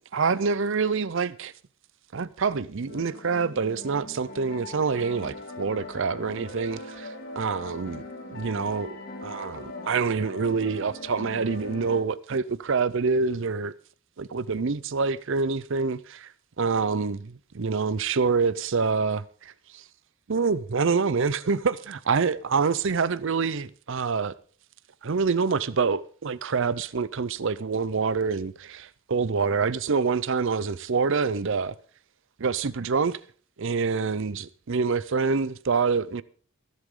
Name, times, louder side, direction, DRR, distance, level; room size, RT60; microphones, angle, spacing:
voice 1, 0.1-1.5 2.1-8.0 8.3-13.7 14.2-16.3 16.6-19.8 20.3-24.3 25.0-31.8 32.4-33.2 33.6-36.2, right 5 dB, 60° right, 0.6 m, -26 dB
sound 1, 2.9-12.0, left 2 dB, 45° left, 2.3 m, -41 dB
24.5 x 8.2 x 3.8 m
head